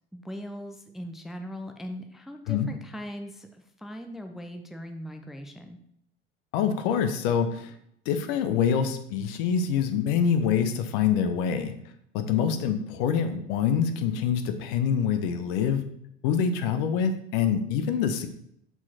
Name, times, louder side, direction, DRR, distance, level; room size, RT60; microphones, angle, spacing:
voice 1, 0.1-5.8, equal, ahead, 5 dB, 0.5 m, -40 dB
voice 2, 6.5-7.7 8.1-11.7 12.1-15.8 16.2-18.3, left 7 dB, 55° left, 8 dB, 0.7 m, -25 dB
5.7 x 4.4 x 4.2 m, 0.72 s
figure-of-eight pair, 70°, 31 cm